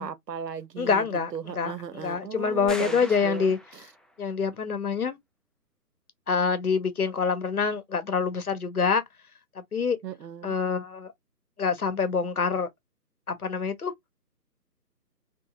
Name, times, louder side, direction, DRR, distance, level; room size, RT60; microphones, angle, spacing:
voice 1, 0.0-3.5 10.0-10.6, right 7 dB, 80° right, 0.7 m, -36 dB
voice 2, 0.8-3.6 4.2-5.2 6.3-9.0 9.6-10.0 10.4-11.1 11.6-12.7 13.3-13.9, left 5 dB, 60° left, 0.9 m, -26 dB
sound 1, 2.7-4.2, equal, ahead, 0.3 m, -41 dB
2.8 x 2.6 x 2.4 m
figure-of-eight pair, 175°, 49 cm